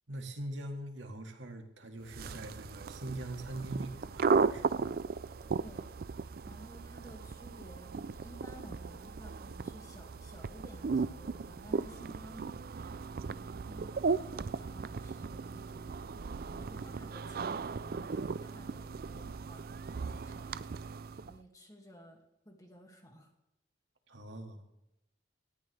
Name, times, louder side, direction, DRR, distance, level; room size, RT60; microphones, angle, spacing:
voice 1, 0.1-4.8 24.1-24.6, right 1 dB, 80° right, 4 dB, 2.0 m, -42 dB
sound 1, 2.0-21.4, right 4 dB, 55° right, 0.4 m, -36 dB
voice 2, 5.6-5.9 6.4-12.9 13.2-15.9 16.4-20.7 21.2-23.3, equal, 20° left, 2 dB, 2.1 m, -54 dB
19.0 x 14.0 x 3.4 m, 0.88 s
head